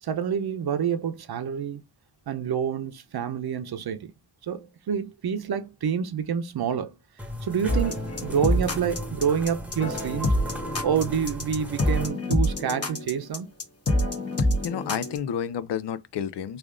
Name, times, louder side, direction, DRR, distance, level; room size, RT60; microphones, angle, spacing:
voice 1, 0.0-1.8 2.3-4.1 4.4-7.0 7.4-10.3 10.8-13.5, right 8 dB, 60° right, 0.7 m, -28 dB
sound 1, 7.2-12.1, left 1 dB, 5° right, 0.9 m, -37 dB
sound 2, 7.7-15.2, left 1 dB, 35° left, 1.0 m, -26 dB
voice 2, 14.4-16.6, left 8 dB, 70° left, 0.5 m, -31 dB
3.3 x 2.5 x 3.6 m
cardioid pair, 70°, 43 cm